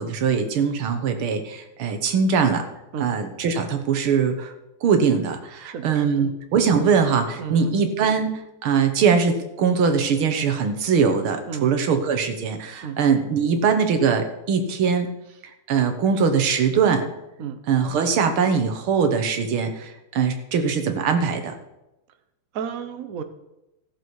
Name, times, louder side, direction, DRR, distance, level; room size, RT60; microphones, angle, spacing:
voice 1, 0.0-2.7 3.0-4.5 4.8-8.3 8.6-15.1 15.7-17.1 17.7-21.5, right 6 dB, 85° right, 7 dB, 2.0 m, -21 dB
voice 2, 5.6-6.3 7.4-7.8 11.5-11.7 12.8-13.0 17.4-17.6 22.5-23.2, right 7 dB, 55° right, 8 dB, 1.0 m, -32 dB
16.0 x 6.9 x 4.7 m, 0.92 s
omnidirectional pair, 2.3 m